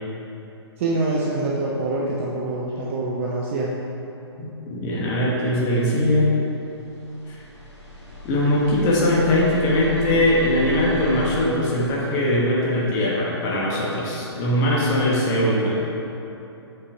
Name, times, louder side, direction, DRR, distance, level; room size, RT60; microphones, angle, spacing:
voice 1, 0.8-3.7, right 2 dB, 30° right, -4 dB, 0.6 m, -25 dB
voice 2, 4.4-6.3 7.3-7.4 8.2-15.8, left 1 dB, 20° left, -5 dB, 1.1 m, -21 dB
sound 1, 6.7-11.4, left 1 dB, 80° left, 1.7 m, -34 dB
6.8 x 5.4 x 4.5 m, 2.9 s
figure-of-eight pair, 130°, 15 cm